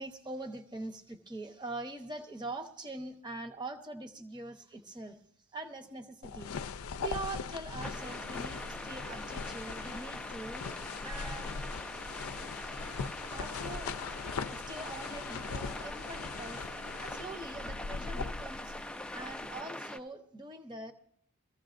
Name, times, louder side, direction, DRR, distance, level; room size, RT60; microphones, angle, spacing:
voice 1, 0.0-5.2 5.5-6.5 7.0-10.7 11.0-12.0 13.3-13.9 14.5-16.6 17.0-18.8 19.1-20.9, right 2 dB, 20° right, 5 dB, 0.9 m, -43 dB
sound 1, 6.2-19.6, left 5 dB, 75° left, 0.5 m, -41 dB
sound 2, 7.8-20.0, left 1 dB, 5° left, 0.4 m, -43 dB
22.5 x 14.5 x 2.5 m, 0.67 s
head